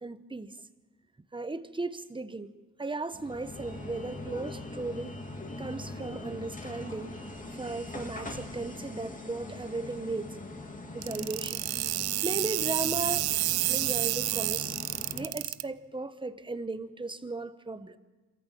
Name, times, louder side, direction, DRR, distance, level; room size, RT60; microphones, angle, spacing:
voice 1, 0.0-0.5 1.3-5.2 5.6-7.1 7.6-10.4 10.9-11.6 12.2-13.3 13.7-14.8 15.1-18.0, right 3 dB, 15° right, 1.0 m, -36 dB
sound 1, 3.1-15.3, left 2 dB, 20° left, 2.4 m, -42 dB
sound 2, 11.0-15.6, right 16 dB, 90° right, 0.6 m, -29 dB
26.0 x 14.0 x 7.2 m
cardioid pair, 90°, 36 cm